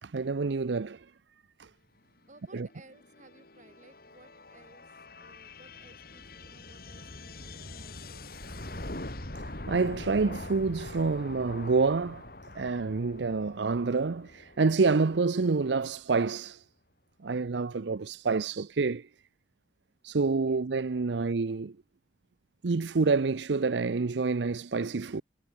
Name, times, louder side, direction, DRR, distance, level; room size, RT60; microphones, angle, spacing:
voice 1, 0.0-1.1 1.6-1.7 2.5-2.7 9.4-12.2 12.5-16.6 17.2-19.1 20.0-21.8 22.6-25.2, right 4 dB, 85° right, 0.6 m, -28 dB
voice 2, 2.3-4.8 5.2-8.9 20.4-21.3, right 2 dB, 45° right, 6.0 m, -58 dB
sound 1, 2.4-15.8, left 2 dB, 55° left, 3.4 m, -44 dB
head